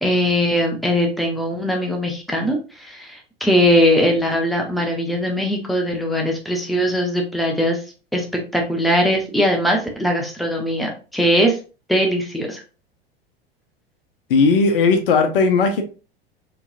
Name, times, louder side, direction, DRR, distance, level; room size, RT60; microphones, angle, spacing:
voice 1, 0.0-7.8 8.1-8.3 8.5-11.6 11.9-12.6, equal, ahead, 0.9 m, -20 dB
voice 2, 14.3-15.8, left 4 dB, 60° left, 0.8 m, -16 dB
4.7 x 3.2 x 2.5 m
figure-of-eight pair, 85°, 32 cm